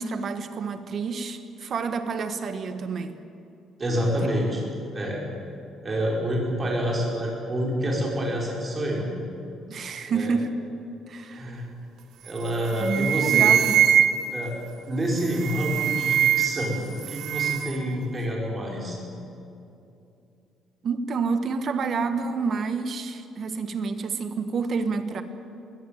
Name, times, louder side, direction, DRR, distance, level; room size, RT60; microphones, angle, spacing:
voice 1, 0.0-3.2 4.0-4.1 9.7-10.6 11.1-11.6 12.8-13.8 20.8-25.2, right 5 dB, 45° right, 9 dB, 1.5 m, -29 dB
voice 2, 3.8-4.7 4.9-5.2 5.8-9.1 10.1-10.3 11.3-11.6 12.2-13.5 14.3-14.5 14.9-16.8 17.1-19.0, equal, 20° right, -2 dB, 5.4 m, -27 dB
sound 1, 12.3-12.5 12.8-14.4 15.3-16.7 17.0-17.8, right 9 dB, 65° right, 1.3 m, -22 dB
21.0 x 17.0 x 9.2 m, 2.6 s
cardioid pair, 145°, 0 cm